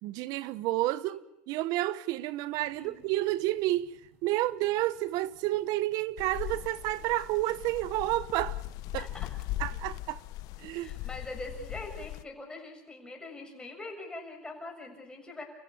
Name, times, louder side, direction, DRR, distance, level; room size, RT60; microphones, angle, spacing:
voice 1, 0.0-8.6 8.9-9.0 9.6-10.2 10.6-10.9, right 16 dB, 50° right, 1.1 m, -30 dB
sound 1, 2.5-10.1, right 5 dB, 70° right, 6.3 m, -63 dB
voice 2, 2.7-3.1 8.9-9.3 10.7-15.4, left 2 dB, 10° left, 7.1 m, -43 dB
sound 2, 6.2-12.2, left 16 dB, 50° left, 0.8 m, -39 dB
30.0 x 15.5 x 8.4 m
supercardioid pair, 120°, 8 cm